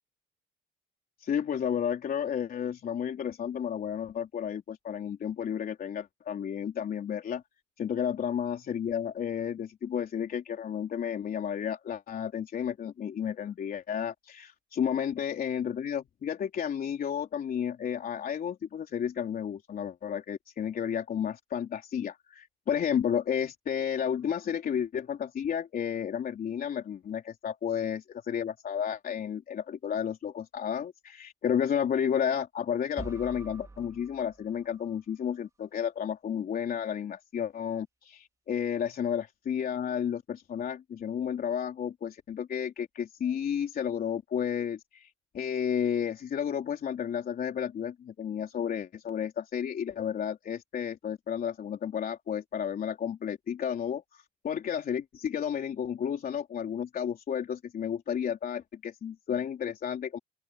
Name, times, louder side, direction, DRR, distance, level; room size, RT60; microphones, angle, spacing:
voice 1, 1.2-7.4 7.8-60.2, left 8 dB, 50° left, 3.6 m, -32 dB
sound 1, 33.0-35.0, right 3 dB, 15° right, 3.4 m, -46 dB
open air
cardioid pair, 115°, 20 cm